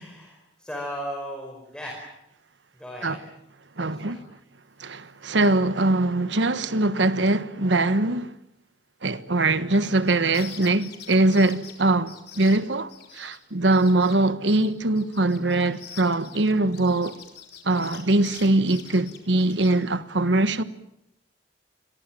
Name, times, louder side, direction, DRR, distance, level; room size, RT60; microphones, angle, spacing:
voice 1, 0.0-2.0 2.7-3.2 3.8-4.2, equal, 5° left, 5.1 m, -36 dB
voice 2, 3.8-4.2 4.8-8.3 9.0-12.9 13.2-17.2 17.6-20.6, right 2 dB, 85° right, 1.3 m, -22 dB
sound 1, 9.8-13.4 13.7-14.1 14.5-19.8, left 9 dB, 60° left, 4.7 m, -45 dB
29.5 x 22.5 x 7.6 m
head